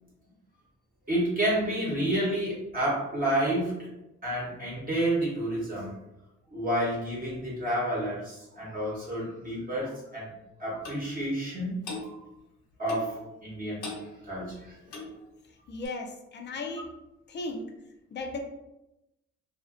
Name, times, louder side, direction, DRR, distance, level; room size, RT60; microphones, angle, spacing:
voice 1, 1.1-3.9 4.2-5.9 6.5-10.3 10.6-11.9 12.8-14.8, right 1 dB, 30° right, -6 dB, 1.0 m, -30 dB
Clock, 10.8-11.0 11.8-12.1 12.9-13.2 13.8-14.1 14.8-15.2 15.8-15.9, left 3 dB, 75° left, 0.7 m, -38 dB
voice 2, 15.7-16.9 17.3-17.7 18.1-18.4, left 2 dB, 35° left, 3 dB, 0.5 m, -36 dB
2.4 x 2.4 x 2.4 m, 0.91 s
cardioid pair, 90°, 30 cm